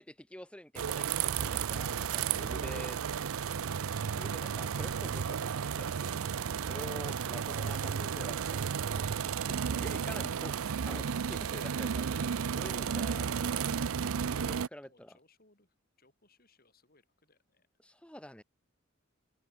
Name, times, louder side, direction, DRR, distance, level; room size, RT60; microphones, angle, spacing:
voice 1, 0.0-3.0 4.1-6.2 6.7-8.6 8.9-9.1 9.5-13.8 14.3-15.2 17.8-18.4, equal, 5° left, 1.9 m, -47 dB
sound 1, 0.7-14.7, right 7 dB, 85° right, 0.5 m, -33 dB
voice 2, 14.4-17.7, left 3 dB, 45° left, 7.3 m, -68 dB
open air
head